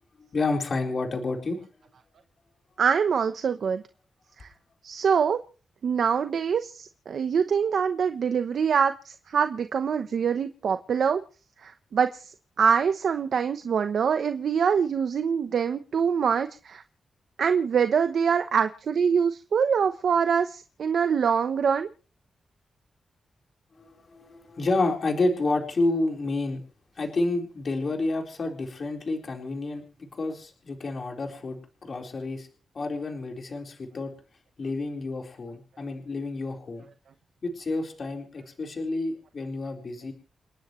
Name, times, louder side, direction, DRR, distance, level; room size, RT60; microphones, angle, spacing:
voice 1, 0.2-1.6 23.8-26.6 27.0-32.5 32.7-34.1 34.6-36.9 37.4-40.1, left 2 dB, 50° left, 2 dB, 4.2 m, -29 dB
voice 2, 2.8-3.8 4.4-4.5 4.8-5.4 5.8-11.2 11.6-12.3 12.6-16.8 17.4-21.9, right 6 dB, 70° right, 8 dB, 0.9 m, -24 dB
29.5 x 10.5 x 3.2 m, 0.38 s
cardioid pair, 100°, 0 cm